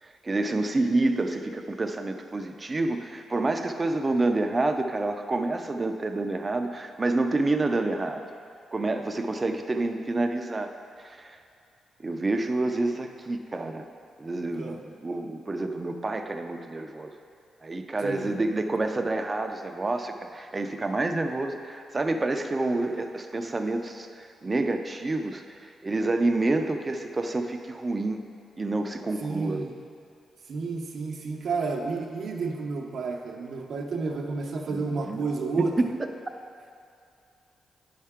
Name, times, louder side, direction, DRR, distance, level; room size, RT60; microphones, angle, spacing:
voice 1, 0.0-8.2 8.7-10.7 11.0-11.4 12.0-13.9 14.2-17.1 17.6-28.2 28.6-29.6 34.7-35.2 35.6-36.1, right 2 dB, 30° right, 6 dB, 0.6 m, -28 dB
voice 2, 18.0-18.3 29.2-29.7 30.5-35.7, right 4 dB, 65° right, 0 dB, 0.7 m, -31 dB
9.3 x 5.6 x 3.6 m, 2.4 s
cardioid pair, 65°, 0 cm